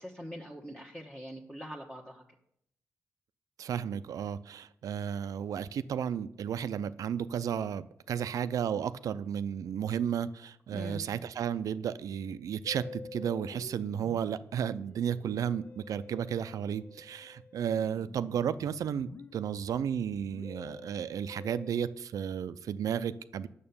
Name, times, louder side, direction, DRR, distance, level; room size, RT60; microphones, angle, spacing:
voice 1, 0.0-2.2 10.7-11.1, equal, 10° left, -2 dB, 1.2 m, -43 dB
voice 2, 3.6-23.5, right 8 dB, 80° right, 14 dB, 0.5 m, -33 dB
Musical instrument, 12.6-21.7, left 4 dB, 45° left, 0.6 m, -50 dB
8.8 x 6.8 x 7.0 m, 0.72 s
cardioid pair, 90°, 6 cm